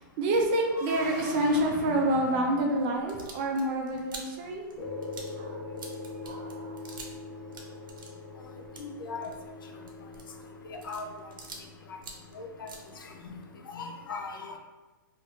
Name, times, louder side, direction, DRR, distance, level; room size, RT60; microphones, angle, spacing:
voice 1, 0.2-4.6 5.4-5.6 6.2-6.8, right 1 dB, 25° right, 1 dB, 0.3 m, -28 dB
sound 1, 0.6-3.6, left 1 dB, 50° left, 1.1 m, -41 dB
sound 2, 2.9-7.2 7.5-11.7 12.0-13.4, right 3 dB, 70° right, 0.7 m, -47 dB
sound 3, 4.8-13.5, left 3 dB, 15° left, 1.0 m, -43 dB
voice 2, 8.8-9.3 10.7-11.1 12.3-12.7 13.2-13.3 13.7-14.6, left 4 dB, 75° left, 2 dB, 0.6 m, -38 dB
3.0 x 2.4 x 2.9 m, 1.2 s
hypercardioid pair, 165°, 11 cm